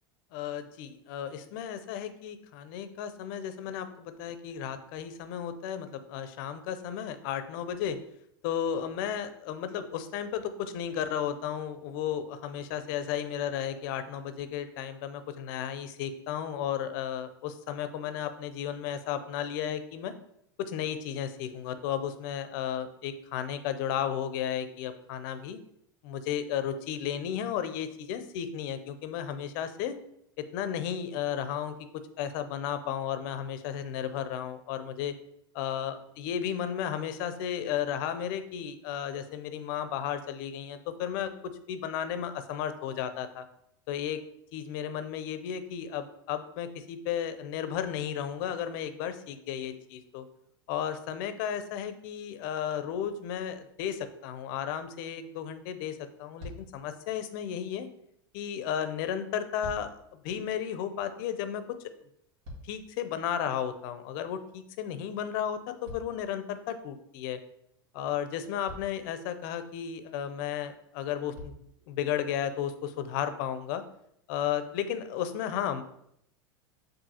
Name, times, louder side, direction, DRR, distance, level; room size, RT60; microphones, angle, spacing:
voice 1, 0.3-8.0 8.4-20.1 20.6-25.6 26.0-30.0 30.4-31.7 32.2-35.1 35.5-41.3 41.7-43.4 43.9-44.2 44.5-50.2 50.7-57.9 58.3-60.0 60.2-61.8 62.6-67.4 67.9-71.5 71.9-73.8 74.3-75.8, left 9 dB, 60° left, 10 dB, 0.5 m, -34 dB
sound 1, 56.4-56.9 59.2-60.1 62.0-63.1 65.8-66.8 68.0-68.1 68.6-69.1 70.5-70.6 71.3-71.8 72.6-72.7, left 1 dB, 65° right, 1.6 m, -46 dB
7.1 x 2.6 x 2.8 m, 0.74 s
hypercardioid pair, 105°, 12 cm